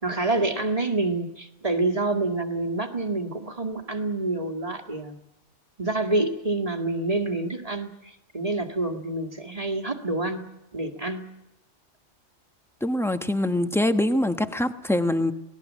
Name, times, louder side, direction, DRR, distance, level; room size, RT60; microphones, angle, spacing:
voice 1, 0.0-5.2 5.8-10.4 10.7-11.2, right 2 dB, 30° right, 1.9 m, -27 dB
voice 2, 12.8-15.3, left 1 dB, ahead, 1.1 m, -24 dB
27.0 x 19.0 x 7.4 m
omnidirectional pair, 1.3 m